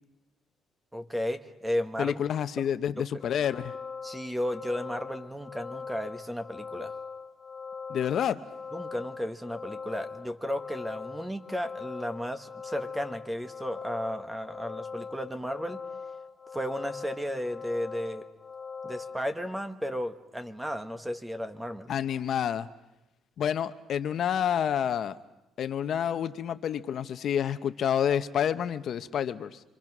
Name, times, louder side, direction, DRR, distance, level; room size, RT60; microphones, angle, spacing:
voice 1, 0.9-2.2 3.0-3.1 4.0-6.9 8.7-15.8 16.5-18.2 18.8-21.9, equal, 5° right, 10 dB, 1.1 m, -34 dB
voice 2, 2.0-3.7 7.9-8.4 21.9-22.7 23.4-25.2 25.6-29.6, left 9 dB, 50° left, 11 dB, 0.8 m, -28 dB
sound 1, 3.2-19.3, left 5 dB, 30° left, 1.4 m, -41 dB
26.0 x 25.5 x 6.1 m, 0.97 s
cardioid pair, 160°, 0 cm